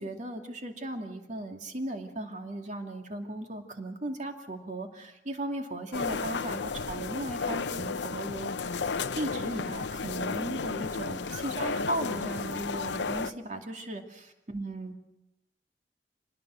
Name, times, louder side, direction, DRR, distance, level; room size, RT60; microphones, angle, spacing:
voice 1, 0.0-8.9 9.1-14.2 14.5-15.0, right 1 dB, 45° right, 3 dB, 2.6 m, -37 dB
sound 1, 5.9-13.3, left 4 dB, 85° left, 0.7 m, -33 dB
26.0 x 20.0 x 6.4 m, 0.89 s
head